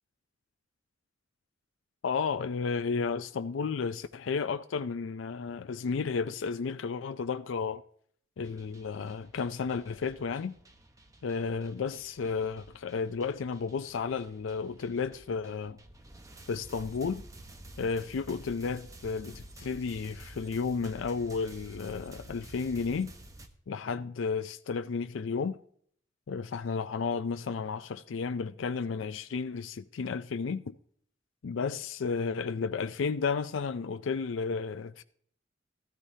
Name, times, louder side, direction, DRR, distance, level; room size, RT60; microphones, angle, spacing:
voice 1, 2.0-7.8 8.4-10.5 11.2-15.8 16.5-17.2 17.8-23.1 23.7-25.6 26.3-30.7 31.4-35.0, left 5 dB, 85° left, 0.4 m, -33 dB
sound 1, 8.4-23.5, right 1 dB, 20° right, 1.0 m, -51 dB
13.5 x 13.0 x 2.7 m
head